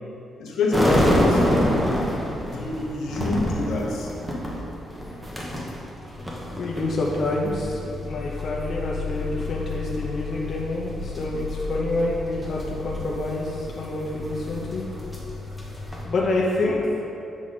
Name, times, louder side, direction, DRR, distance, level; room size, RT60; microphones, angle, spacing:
voice 1, 0.4-1.7 2.4-4.1, left 3 dB, 85° left, -1 dB, 1.1 m, -26 dB
sound 1, 0.7-16.1, left 1 dB, 5° right, 1.0 m, -28 dB
voice 2, 6.5-14.8 16.0-16.8, left 2 dB, 40° left, -4 dB, 0.8 m, -27 dB
7.6 x 5.0 x 4.1 m, 2.7 s
cardioid pair, 170°, 0 cm